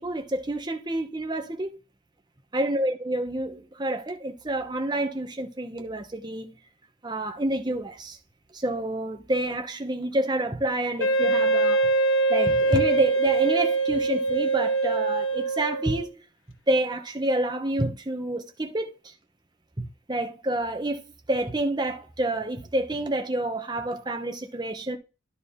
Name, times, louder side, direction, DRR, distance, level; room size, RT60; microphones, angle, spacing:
voice 1, 0.0-1.8 2.5-6.6 7.0-8.2 8.5-11.9 12.3-16.2 16.7-19.1 19.8-21.0 21.3-25.0, right 1 dB, 20° right, 0.9 m, -28 dB
Wind instrument woodwind instrument, 11.0-16.1, right 3 dB, 85° left, 1.0 m, -23 dB
11.0 x 4.4 x 3.8 m
head